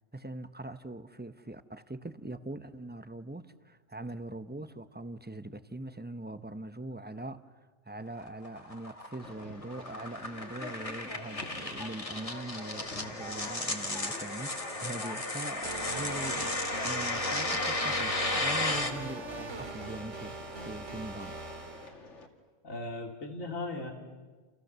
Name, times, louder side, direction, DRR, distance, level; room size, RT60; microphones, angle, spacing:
voice 1, 0.1-7.4 7.9-21.4, right 2 dB, 10° right, 0.7 m, -42 dB
sound 1, 8.2-18.9, left 2 dB, 25° left, 1.9 m, -34 dB
Conversation, 9.2-22.3, left 3 dB, 60° left, 2.7 m, -47 dB
sound 2, 15.6-21.9, right 3 dB, 65° right, 2.6 m, -41 dB
voice 2, 22.6-23.9, left 2 dB, 90° left, 3.4 m, -37 dB
29.5 x 29.5 x 6.8 m
omnidirectional pair, 1.3 m